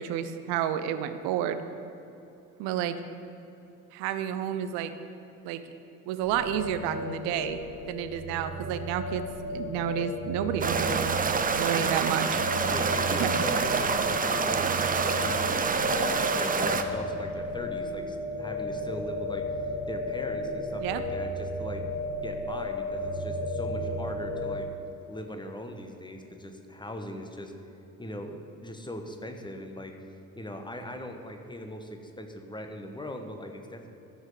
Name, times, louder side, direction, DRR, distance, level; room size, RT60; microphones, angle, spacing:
voice 1, 0.0-1.6 2.6-2.9 3.9-4.9 5.4-5.6 6.1-7.6 7.9-11.2 11.5-12.4 13.1-13.4 20.8-21.0, right 10 dB, 60° right, 10 dB, 0.8 m, -30 dB
sound 1, 6.2-24.6, left 1 dB, 35° right, 2.3 m, -34 dB
sound 2, 10.6-16.8, right 5 dB, 20° right, 0.7 m, -27 dB
voice 2, 12.7-15.9 16.1-21.8 22.2-24.7 25.1-27.5 28.0-33.9, left 1 dB, 10° left, 5 dB, 1.2 m, -40 dB
14.0 x 6.4 x 5.0 m, 2.9 s
figure-of-eight pair, 50°, 47 cm